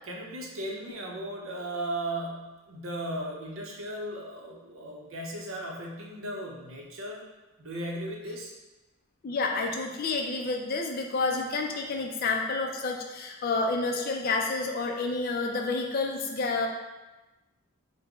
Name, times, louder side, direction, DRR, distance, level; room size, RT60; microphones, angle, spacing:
voice 1, 0.1-7.2 7.6-8.5, right 1 dB, 70° right, -1 dB, 0.6 m, -36 dB
voice 2, 9.2-16.7, left 3 dB, 40° left, 2 dB, 0.3 m, -29 dB
3.4 x 2.0 x 3.6 m, 1.1 s
head